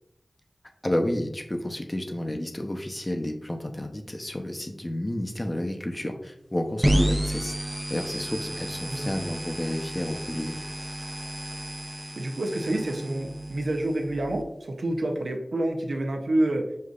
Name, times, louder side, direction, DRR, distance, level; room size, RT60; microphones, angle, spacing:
voice 1, 0.8-7.5 7.9-10.6, left 1 dB, 30° left, 4 dB, 0.7 m, -30 dB
sound 1, 6.8-14.4, right 1 dB, 20° right, 0.5 m, -31 dB
voice 2, 12.2-16.6, right 1 dB, 85° right, 3 dB, 0.6 m, -28 dB
6.5 x 2.6 x 2.4 m, 0.81 s
cardioid pair, 40°, 0 cm